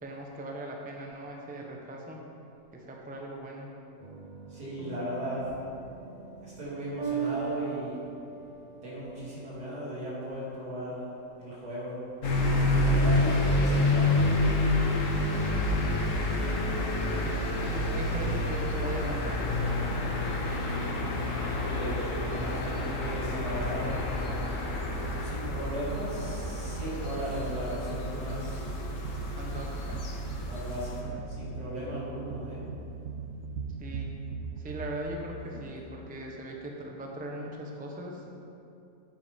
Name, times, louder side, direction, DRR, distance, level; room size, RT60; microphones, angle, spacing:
voice 1, 0.0-2.2 2.7-3.7 15.9-16.2 16.6-19.9 29.3-30.0 33.8-34.1 34.6-38.3, right 1 dB, 10° right, 0 dB, 0.6 m, -40 dB
sound 1, 4.0-13.0, right 8 dB, 40° right, 0.7 m, -41 dB
voice 2, 4.5-5.6 6.4-8.0 8.8-11.0 11.4-12.0 12.5-14.3 21.6-23.9 25.2-28.7 30.4-32.7, equal, 80° right, -8 dB, 3.2 m, -37 dB
sound 2, 12.2-31.0, left 2 dB, 55° left, 1.5 m, -29 dB
sound 3, 18.1-35.7, right 4 dB, 65° right, 1.0 m, -40 dB
8.6 x 8.1 x 5.1 m, 2.7 s
omnidirectional pair, 1.6 m